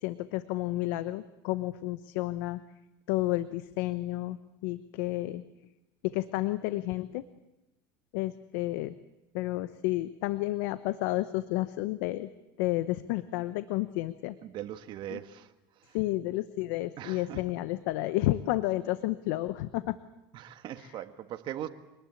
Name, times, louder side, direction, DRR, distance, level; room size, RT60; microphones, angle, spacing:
voice 1, 0.0-2.6 3.1-4.4 4.6-5.4 6.1-7.2 8.1-9.0 9.3-12.3 12.6-14.4 15.1-15.2 15.9-20.0 20.8-21.0, left 17 dB, 80° left, 13 dB, 0.9 m, -31 dB
voice 2, 14.4-15.5 17.0-17.4 20.3-21.7, right 11 dB, 50° right, 8 dB, 1.6 m, -40 dB
25.0 x 19.5 x 8.7 m, 0.99 s
supercardioid pair, 120°, 10 cm